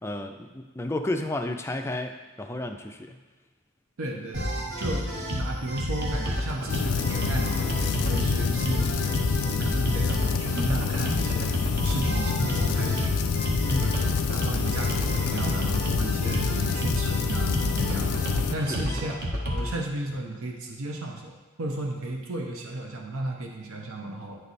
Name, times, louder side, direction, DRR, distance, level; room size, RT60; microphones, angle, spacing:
voice 1, 0.0-3.2 9.7-10.0 13.6-13.9 18.7-19.1, left 1 dB, 10° left, 4 dB, 0.3 m, -32 dB
voice 2, 4.0-9.2 9.5-13.3 13.8-19.2 19.5-24.4, right 1 dB, 75° right, 2 dB, 0.8 m, -34 dB
sound 1, 4.3-19.7, equal, 50° right, 0.9 m, -30 dB
sound 2, 6.7-18.5, left 5 dB, 90° left, 0.4 m, -27 dB
9.4 x 3.3 x 4.1 m, 1.3 s
head